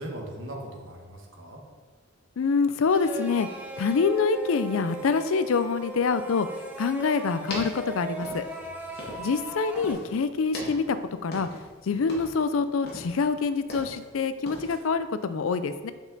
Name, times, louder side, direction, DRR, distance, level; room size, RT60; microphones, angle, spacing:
voice 1, 0.0-1.6 8.6-9.0, right 1 dB, 65° right, 0 dB, 1.4 m, -40 dB
voice 2, 2.4-3.5 3.8-6.5 6.8-8.4 9.2-11.0 11.2-11.5 11.9-15.9, left 5 dB, 85° left, 12 dB, 0.5 m, -26 dB
sound 1, 2.9-9.9, right 1 dB, 10° right, 0.8 m, -38 dB
sound 2, 7.2-9.5 9.8-10.1 10.5-11.7 12.0-12.5 12.9-14.1 14.5-14.8, left 1 dB, 55° left, 1.8 m, -40 dB
7.3 x 5.5 x 3.9 m, 1.4 s
head